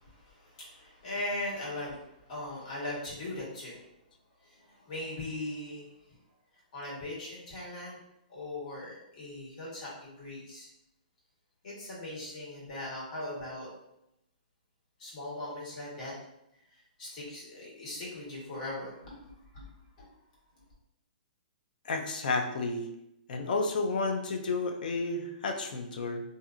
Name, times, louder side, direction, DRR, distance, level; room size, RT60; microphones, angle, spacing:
voice 1, 0.0-2.0 2.3-3.8 4.6-5.8 6.7-8.0 8.3-10.7 11.6-13.7 15.0-16.1 17.0-19.2 19.5-19.7, left 1 dB, 55° left, -6 dB, 1.5 m, -39 dB
voice 2, 21.8-22.9 23.3-26.2, left 3 dB, 70° left, 5 dB, 0.4 m, -31 dB
2.6 x 2.5 x 2.4 m, 0.84 s
hypercardioid pair, 145°, 5 cm